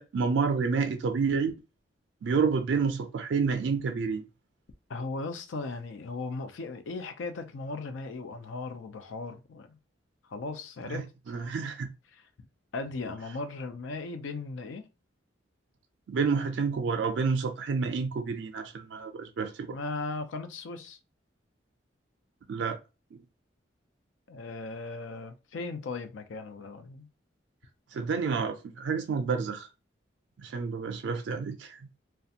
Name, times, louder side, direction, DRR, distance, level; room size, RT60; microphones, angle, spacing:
voice 1, 0.0-1.5 2.2-4.2 10.9-11.9 16.1-19.8 22.5-22.8 23.1-23.2 27.9-29.7 30.4-32.0, right 5 dB, 80° right, 0.4 m, -29 dB
voice 2, 4.9-9.8 10.3-11.1 11.3-11.5 12.1-12.2 12.7-14.8 19.7-21.0 24.3-27.1, left 3 dB, 90° left, 0.4 m, -37 dB
2.4 x 2.2 x 2.7 m
head